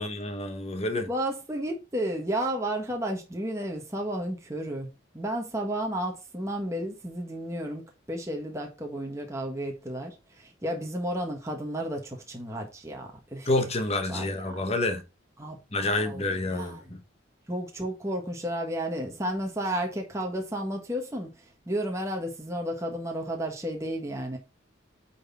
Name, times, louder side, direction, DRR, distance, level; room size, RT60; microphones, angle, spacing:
voice 1, 0.0-1.1 13.5-15.0 15.7-17.0, left 2 dB, 30° left, 1.3 m, -28 dB
voice 2, 1.0-13.5 14.1-14.6 15.4-16.8 17.5-21.3 21.7-24.4, right 1 dB, 15° right, 1.5 m, -32 dB
9.1 x 4.3 x 4.3 m
head